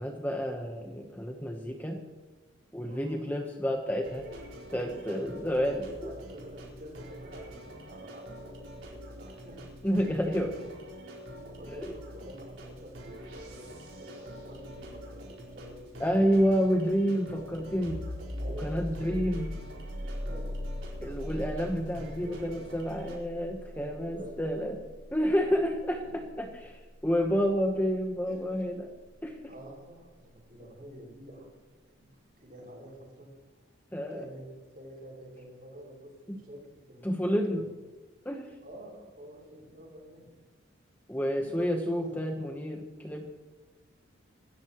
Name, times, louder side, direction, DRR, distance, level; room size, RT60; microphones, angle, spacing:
voice 1, 0.0-2.0 2.7-4.2 4.7-6.1 9.8-10.5 11.7-11.9 16.0-18.0 18.6-19.5 21.0-24.8 25.1-28.9 29.2-29.4 33.9-34.2 36.3-36.4 37.0-37.6 38.2-38.5 41.1-43.3, equal, 10° left, 2 dB, 1.0 m, -29 dB
voice 2, 2.8-3.2 4.8-9.8 10.5-10.7 11.6-16.4 18.4-19.2 20.2-20.6 21.3-21.5 23.7-24.6 25.5-25.6 28.2-28.4 29.5-31.5 32.0-32.1 32.4-33.3 34.1-34.5 34.7-37.1 37.5-37.6 38.6-40.2 41.4-41.5 42.2-42.3, equal, 45° right, -3 dB, 6.2 m, -48 dB
sound 1, 4.0-23.2, equal, 70° right, 4.6 m, -46 dB
sound 2, 17.9-29.3, equal, 70° left, 4.7 m, -41 dB
25.0 x 14.0 x 3.1 m, 1.2 s
head